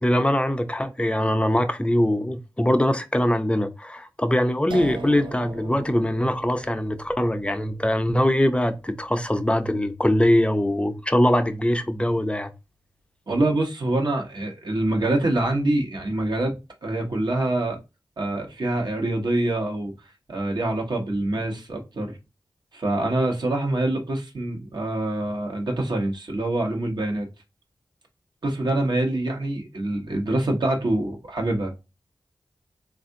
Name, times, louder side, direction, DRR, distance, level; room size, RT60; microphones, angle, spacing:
voice 1, 0.0-12.5, left 1 dB, 15° left, 0.5 m, -22 dB
sound 1, 4.7-11.6, right 3 dB, 90° right, 0.4 m, -41 dB
voice 2, 13.3-17.8 18.2-19.9 20.3-22.2 22.7-27.3 28.4-31.7, right 2 dB, 65° right, 1.1 m, -25 dB
3.5 x 2.5 x 2.6 m
cardioid pair, 45°, 8 cm